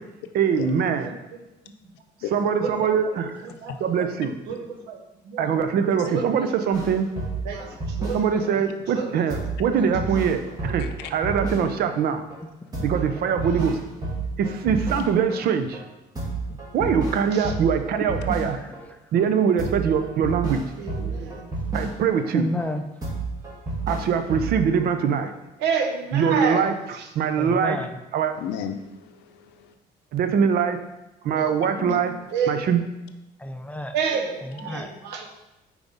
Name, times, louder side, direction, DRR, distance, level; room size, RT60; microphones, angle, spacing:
voice 1, 0.3-1.1 2.3-3.3 3.8-4.3 5.4-7.1 8.1-10.8 11.1-12.2 12.8-13.8 14.4-15.8 16.7-18.6 19.1-20.6 21.7-22.5 23.9-25.3 26.1-26.7 27.1-27.8 28.1-28.3 30.1-30.8 31.2-32.1 32.5-32.8, right 7 dB, 65° right, 8 dB, 0.6 m, -22 dB
voice 2, 1.0-1.4 2.6-2.7 3.4-4.1 4.5-5.5 6.0-6.6 7.4-9.5 9.7-9.9 10.4-10.8 13.5-13.6 17.3-17.5 20.8-21.5 25.6-26.7 26.9-27.1 31.3-31.9 32.3-32.8 33.9-35.3, right 6 dB, 90° right, 3 dB, 0.9 m, -30 dB
sound 1, 6.7-8.5 8.9-9.0 9.3-12.0 12.3-12.4 12.7-15.4 15.7-15.8 16.1-18.8 19.2-19.3 19.6-22.3 22.6-22.7 23.0-24.8, right 3 dB, 20° right, 1.8 m, -31 dB
voice 3, 10.8-11.1 28.3-29.7 31.8-32.0, left 8 dB, 90° left, 7 dB, 0.6 m, -35 dB
voice 4, 16.2-16.6 18.5-19.0 22.3-22.9 26.3-26.4 27.4-28.0 33.4-33.9 34.4-34.9, left 1 dB, 10° left, 7 dB, 0.5 m, -32 dB
5.3 x 4.7 x 3.9 m, 0.96 s
cardioid pair, 110°, 17 cm